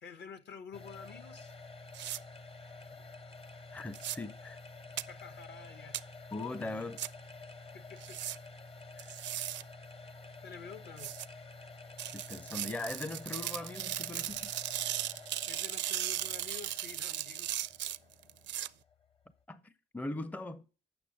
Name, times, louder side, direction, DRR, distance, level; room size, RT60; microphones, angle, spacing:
voice 1, 0.0-1.6 5.1-6.3 6.6-6.9 7.7-8.2 8.9-9.3 10.4-11.1 15.5-17.7, left 6 dB, 60° left, 1.2 m, -50 dB
sound 1, 0.7-19.4, left 3 dB, 30° left, 0.8 m, -50 dB
sound 2, 1.9-2.2 3.9-4.2 5.0-5.1 5.9-6.0 7.0-7.1 8.0-8.4 9.0-9.6 11.0-11.3 12.0-18.7, right 12 dB, 65° right, 0.4 m, -37 dB
voice 2, 3.7-4.6 6.3-7.0 12.1-14.3 19.5-20.6, left 2 dB, 10° left, 0.5 m, -40 dB
8.5 x 6.0 x 5.2 m
cardioid pair, 90°, 20 cm